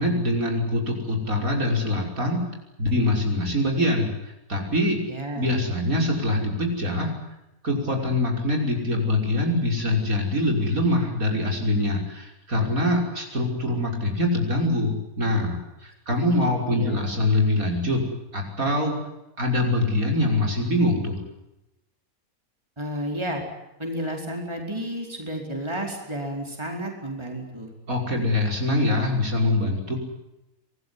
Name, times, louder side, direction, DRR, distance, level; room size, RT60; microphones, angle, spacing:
voice 1, 0.0-2.4 2.8-5.0 5.4-7.1 7.6-19.0 19.4-21.2 27.9-30.0, left 1 dB, 70° right, 1 dB, 6.3 m, -24 dB
voice 2, 5.1-5.5 16.3-17.0 22.8-23.4 23.8-27.7, right 1 dB, 20° right, 1 dB, 4.8 m, -32 dB
26.0 x 20.0 x 9.8 m, 0.91 s
omnidirectional pair, 1.5 m